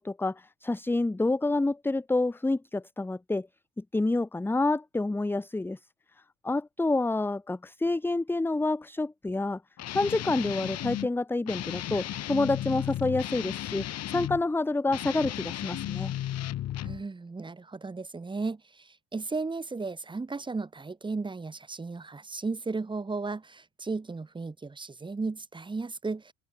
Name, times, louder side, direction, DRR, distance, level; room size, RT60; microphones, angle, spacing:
voice 1, 0.0-3.5 3.8-5.8 6.4-9.6 9.9-16.1, left 2 dB, 5° left, 1.1 m, -28 dB
Guitar, 9.8-11.1 11.5-14.4 14.9-17.0, left 12 dB, 45° left, 2.7 m, -34 dB
voice 2, 16.8-26.3, right 3 dB, 15° right, 3.4 m, -35 dB
open air
cardioid pair, 165°, 34 cm